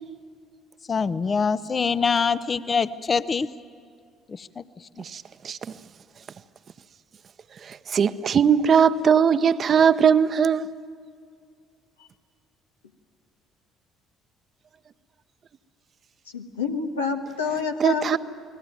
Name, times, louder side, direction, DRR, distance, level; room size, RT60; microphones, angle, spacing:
voice 1, 0.9-3.5 4.3-4.6, left 5 dB, 35° left, 0.8 m, -24 dB
voice 2, 5.0-5.6 7.7-10.7 17.8-18.2, right 7 dB, 45° right, 0.9 m, -20 dB
voice 3, 16.3-18.2, left 5 dB, 85° left, 1.4 m, -28 dB
29.0 x 19.5 x 9.3 m
figure-of-eight pair, 55°, 0 cm